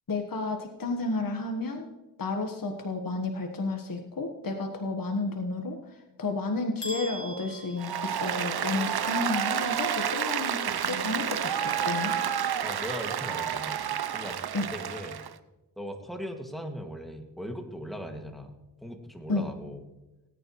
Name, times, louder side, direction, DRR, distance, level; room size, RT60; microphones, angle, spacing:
voice 1, 0.1-1.9 2.2-5.8 6.2-12.1 14.5-14.6 19.3-19.4, left 3 dB, 55° left, 4 dB, 1.4 m, -31 dB
sound 1, 6.8-8.8, right 1 dB, 80° left, 3.5 m, -41 dB
Applause, 7.8-15.3, right 9 dB, 65° right, 0.8 m, -30 dB
voice 2, 12.6-15.2 15.8-18.5 18.8-19.8, equal, ahead, 3 dB, 2.2 m, -39 dB
18.0 x 9.5 x 3.2 m, 1.0 s
cardioid pair, 50°, 42 cm